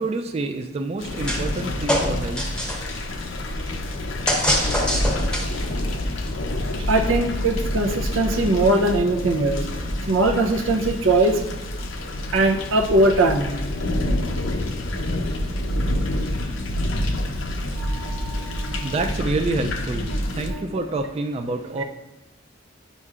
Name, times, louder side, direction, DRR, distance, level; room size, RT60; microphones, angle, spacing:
voice 1, 0.0-2.5 18.8-21.8, right 2 dB, 30° right, 5 dB, 0.3 m, -27 dB
sound 1, 1.0-20.5, left 1 dB, 80° left, 0.7 m, -27 dB
sound 2, 1.3-1.6 1.9-3.0 4.3-5.7, equal, 5° left, 0.8 m, -24 dB
voice 2, 6.9-9.6 10.1-11.4 12.3-13.6 17.8-18.9 20.5-20.7, right 2 dB, 90° right, 3 dB, 0.6 m, -21 dB
9.1 x 5.4 x 2.4 m, 1.0 s
head